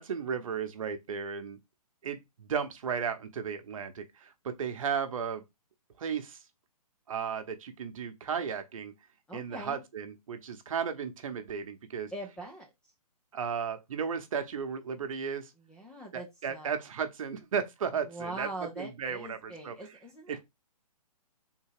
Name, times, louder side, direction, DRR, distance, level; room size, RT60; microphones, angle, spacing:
voice 1, 0.0-1.6 2.0-5.4 6.0-6.4 7.1-8.9 9.3-12.1 13.3-15.5 16.1-19.7 20.3-20.4, right 6 dB, 60° right, 0.9 m, -35 dB
voice 2, 9.3-9.8 12.1-12.7 15.7-16.8 18.1-20.4, right 1 dB, 5° left, 0.4 m, -42 dB
3.6 x 2.7 x 4.7 m
hypercardioid pair, 145°, 20 cm